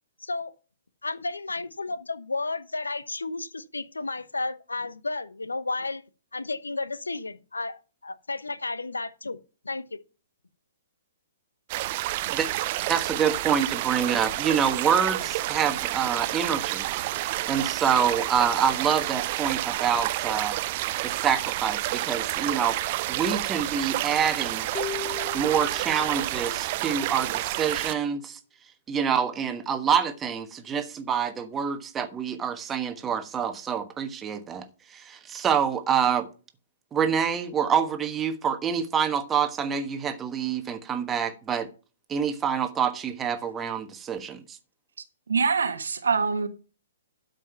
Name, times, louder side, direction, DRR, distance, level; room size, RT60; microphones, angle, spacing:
voice 1, 0.2-0.5 1.0-6.0 6.3-9.4 9.6-10.0, left 3 dB, 75° left, 0.8 m, -32 dB
Relaxing Mountains Rivers Streams Running Water, 11.7-27.9, right 16 dB, 40° right, 0.5 m, -29 dB
voice 2, 12.9-16.9 17.2-20.6 21.0-22.8 23.1-24.7 25.3-28.4 28.9-36.3 36.9-41.7 42.1-44.6, right 7 dB, 15° right, 1.2 m, -26 dB
sound 1, 24.7-26.6, left 7 dB, 15° left, 2.2 m, -38 dB
voice 3, 45.3-46.5, right 5 dB, 65° right, 1.4 m, -24 dB
12.5 x 5.3 x 5.5 m
figure-of-eight pair, 120°, 0 cm